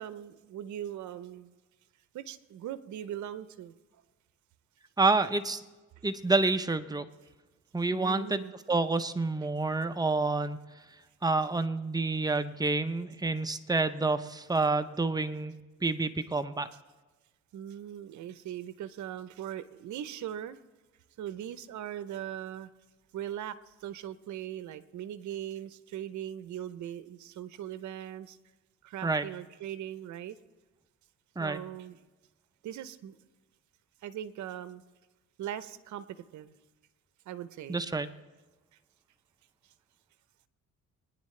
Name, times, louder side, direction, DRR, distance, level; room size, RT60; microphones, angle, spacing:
voice 1, 0.0-1.5 2.1-3.7 7.9-8.5 17.5-20.6 21.2-22.7 23.1-28.4 28.8-30.4 31.4-32.0 32.6-33.2 34.0-34.8 35.4-36.5 37.3-37.8, right 11 dB, 70° right, 0.7 m, -40 dB
voice 2, 5.0-5.6 6.0-7.0 7.7-10.6 11.2-16.7 29.0-29.3 31.4-31.6 37.7-38.1, right 3 dB, 15° right, 0.7 m, -28 dB
22.5 x 9.9 x 3.2 m
cardioid pair, 90°, 30 cm